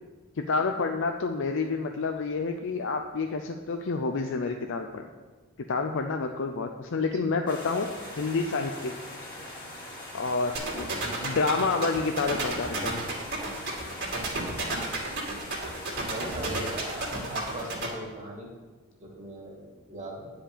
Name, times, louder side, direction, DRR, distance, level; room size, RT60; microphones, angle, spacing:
voice 1, 0.4-5.1 5.6-8.9 10.1-13.0, left 4 dB, 65° left, 5 dB, 0.5 m, -29 dB
sound 1, 7.5-18.0, left 1 dB, 25° left, 2.3 m, -42 dB
sound 2, 10.5-17.9, right 3 dB, 55° right, 2.5 m, -31 dB
voice 2, 16.1-18.5 19.0-20.3, right 1 dB, 35° right, -1 dB, 2.2 m, -39 dB
10.0 x 5.1 x 6.7 m, 1.4 s
head